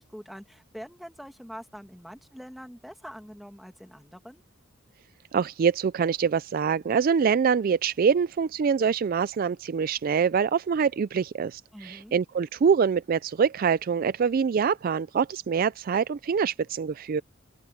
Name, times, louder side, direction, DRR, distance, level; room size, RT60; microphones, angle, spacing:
voice 1, 0.0-4.4 11.7-12.2, equal, ahead, 2.3 m, -44 dB
voice 2, 5.3-17.2, right 6 dB, 45° right, 0.3 m, -25 dB
open air
head